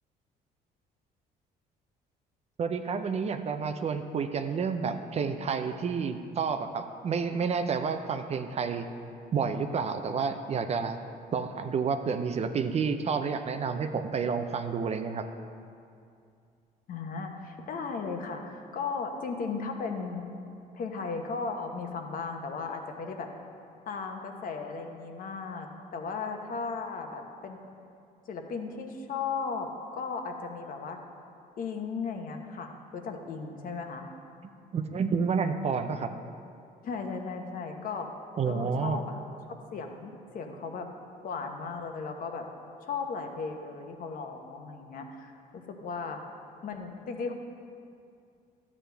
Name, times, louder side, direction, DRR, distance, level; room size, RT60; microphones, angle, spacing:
voice 1, 2.6-8.8 9.3-11.0 11.3-15.3 34.7-36.1 38.4-39.0, right 5 dB, 40° right, 8 dB, 0.5 m, -30 dB
voice 2, 16.9-20.2 20.7-23.3 23.9-27.6 28.3-31.0 31.6-34.1 36.8-38.1 38.4-39.2 39.5-40.9 41.2-42.4 42.8-46.2 46.6-47.3, left 5 dB, 55° left, 4 dB, 1.1 m, -36 dB
12.0 x 8.5 x 3.4 m, 2.4 s
cardioid pair, 110°, 17 cm